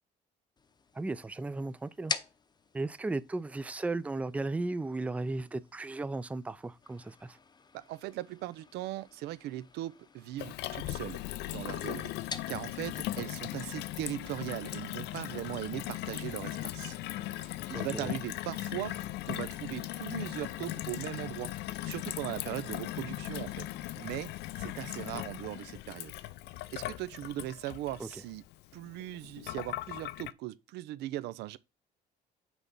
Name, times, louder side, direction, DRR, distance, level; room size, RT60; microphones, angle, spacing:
sound 1, 0.6-14.9, left 5 dB, 25° left, 0.7 m, -47 dB
voice 1, 0.9-2.1 2.7-7.4 17.7-18.1 28.0-28.2, right 2 dB, 10° right, 0.4 m, -35 dB
voice 2, 7.7-11.2 11.5-12.1 12.5-17.0 17.4-19.0 19.3-21.5 21.8-23.7 24.0-26.1 26.7-28.4 28.7-31.6, right 15 dB, 85° right, 0.5 m, -39 dB
Gurgling / Water tap faucet / Sink (filling or washing), 10.4-30.3, left 15 dB, 80° left, 0.5 m, -39 dB
6.2 x 3.4 x 5.4 m
cardioid pair, 110°, 17 cm